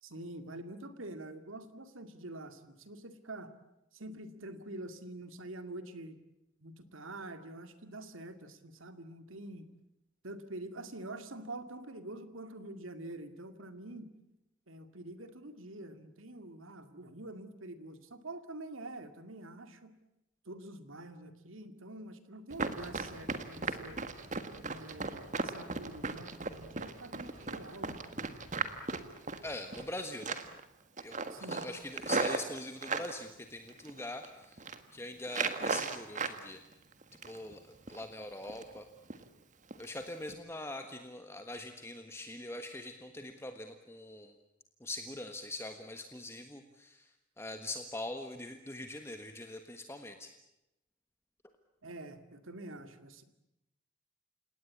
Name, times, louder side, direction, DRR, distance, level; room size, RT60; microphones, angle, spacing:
voice 1, 0.0-3.5 3.9-6.2 6.6-9.7 10.2-14.1 14.7-20.0 20.5-24.0 24.7-28.0 31.3-31.7 51.8-53.2, right 2 dB, 80° right, 9 dB, 2.4 m, -46 dB
Run, 22.5-29.9 30.2-30.6 31.0-33.1 33.7-34.2 34.5-34.8 35.3-36.4 36.7-37.5 37.9-38.0 38.4-38.8 39.1-39.2 39.7-39.8 40.2-40.3, right 4 dB, 40° right, 1.7 m, -36 dB
voice 2, 29.4-30.4 31.0-36.6 37.3-38.9 39.8-44.3 44.8-47.1 47.4-50.3, left 1 dB, 15° left, 6 dB, 1.4 m, -43 dB
29.5 x 18.0 x 8.6 m, 0.90 s
head